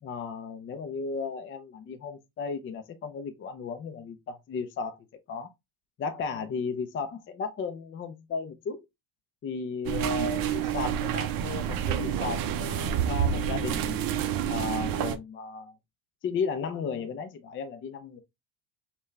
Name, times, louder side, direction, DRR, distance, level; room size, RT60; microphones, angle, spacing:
voice 1, 0.0-5.5 6.0-8.8 9.4-14.0 14.5-15.7 16.2-18.2, left 5 dB, 25° left, 0.5 m, -35 dB
sound 1, 9.8-15.1, right 9 dB, 50° right, 0.7 m, -28 dB
5.6 x 2.3 x 3.2 m
cardioid pair, 135°, 45 cm